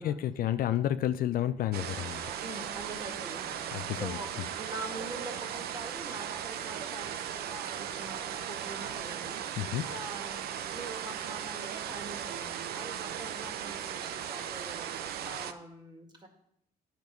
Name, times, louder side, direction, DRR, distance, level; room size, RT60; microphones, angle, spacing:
voice 1, 0.0-2.2 3.7-4.5 9.6-9.9, left 11 dB, 60° left, 12 dB, 0.5 m, -31 dB
sound 1, 1.7-15.5, right 9 dB, 65° right, 0.7 m, -37 dB
voice 2, 2.4-16.3, right 2 dB, 25° right, 3 dB, 2.0 m, -44 dB
9.6 x 6.0 x 5.2 m, 0.71 s
cardioid pair, 110°, 17 cm